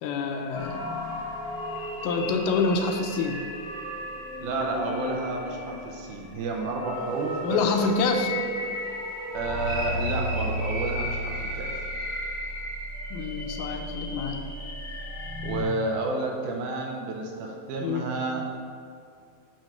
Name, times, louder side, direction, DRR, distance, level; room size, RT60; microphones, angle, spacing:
voice 1, 0.0-0.8 2.0-3.4 7.4-8.3 13.1-14.4 17.8-18.1, left 4 dB, 85° left, 4 dB, 2.2 m, -26 dB
sound 1, 0.5-15.6, equal, 35° left, 1.0 m, -34 dB
voice 2, 4.4-7.6 9.3-11.7 15.4-18.5, right 2 dB, 75° right, 1 dB, 2.0 m, -30 dB
8.9 x 3.1 x 5.7 m, 2.4 s
omnidirectional pair, 3.9 m